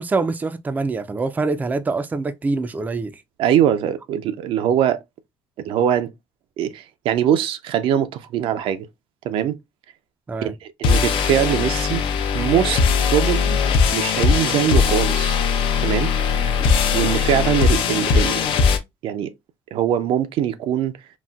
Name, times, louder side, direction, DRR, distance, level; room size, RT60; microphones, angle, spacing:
voice 1, 0.0-3.2 10.3-10.5, right 3 dB, 20° right, 0.3 m, -25 dB
voice 2, 3.4-5.0 5.6-6.1 6.6-8.9 9.2-9.6 10.4-12.0 12.3-13.6 13.9-15.4 15.8-16.1 16.9-18.4 19.0-19.3 19.7-20.9, right 10 dB, 75° right, 0.5 m, -22 dB
sound 1, 10.8-18.8, left 6 dB, 75° left, 0.6 m, -19 dB
4.0 x 2.1 x 2.3 m
cardioid pair, 115°, 9 cm